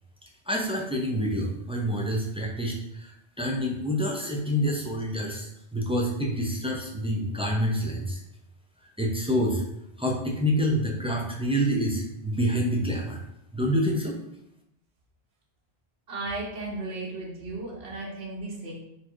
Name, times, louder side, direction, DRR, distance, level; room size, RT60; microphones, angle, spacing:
voice 1, 0.5-8.2 9.0-9.6 10.0-13.2 13.5-14.2, equal, 5° right, -1 dB, 0.5 m, -27 dB
voice 2, 16.1-18.7, right 2 dB, 75° right, -4 dB, 1.4 m, -35 dB
4.4 x 2.6 x 4.4 m, 0.83 s
omnidirectional pair, 1.1 m